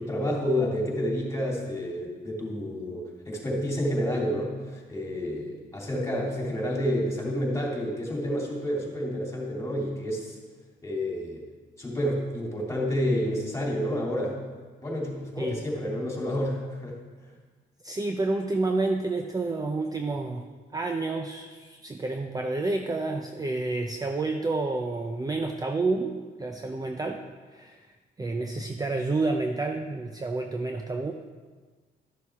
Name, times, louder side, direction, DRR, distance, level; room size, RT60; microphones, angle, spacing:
voice 1, 0.0-10.4 10.8-11.4 11.8-14.4 14.8-17.0, equal, 15° left, -3 dB, 2.9 m, -29 dB
voice 2, 17.8-20.5 20.7-31.1, right 3 dB, 20° right, 4 dB, 0.6 m, -29 dB
12.0 x 6.8 x 3.6 m, 1.4 s
cardioid pair, 90°, 20 cm